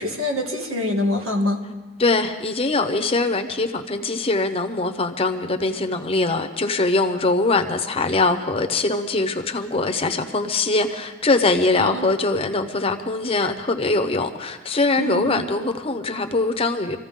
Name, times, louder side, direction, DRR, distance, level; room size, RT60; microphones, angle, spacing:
voice 1, 0.0-1.7 11.8-12.1 15.0-15.4, left 1 dB, 80° right, 0 dB, 2.4 m, -25 dB
voice 2, 2.0-17.0, left 3 dB, 30° left, 6 dB, 0.8 m, -22 dB
25.0 x 15.0 x 3.7 m, 1.3 s
head